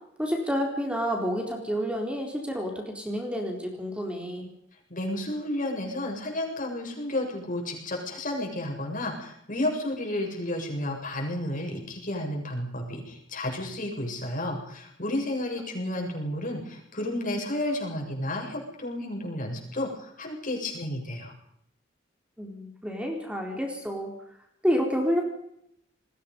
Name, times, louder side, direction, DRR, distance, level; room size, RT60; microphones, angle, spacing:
voice 1, 0.2-4.5 22.4-24.1 24.6-25.2, equal, 5° right, 1 dB, 4.2 m, -29 dB
voice 2, 4.9-21.3, left 1 dB, 45° left, 1 dB, 7.6 m, -32 dB
29.0 x 21.0 x 5.5 m, 0.74 s
head